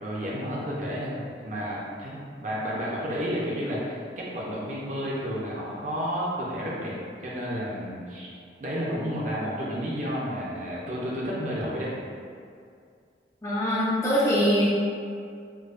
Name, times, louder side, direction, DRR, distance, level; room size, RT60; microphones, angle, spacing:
voice 1, 0.0-7.0 7.2-11.9, equal, 40° right, -6 dB, 0.6 m, -31 dB
voice 2, 13.4-14.7, equal, 15° left, -7 dB, 0.4 m, -23 dB
4.5 x 2.2 x 2.4 m, 2.3 s
head